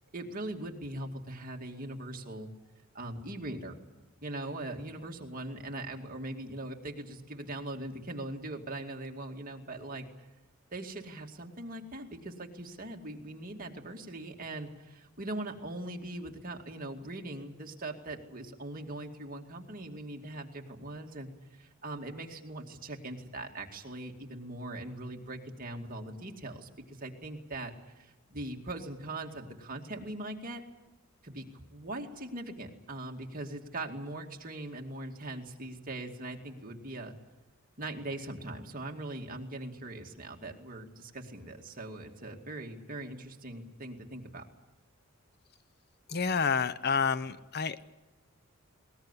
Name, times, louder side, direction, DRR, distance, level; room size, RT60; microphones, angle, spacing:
voice 1, 0.1-2.5 2.9-3.8 4.2-10.3 10.7-30.6 31.2-37.2 37.8-44.4, right 1 dB, 40° right, 2 dB, 2.3 m, -41 dB
voice 2, 46.1-47.8, left 5 dB, 50° left, 15 dB, 0.7 m, -29 dB
20.5 x 19.0 x 9.8 m, 1.1 s
head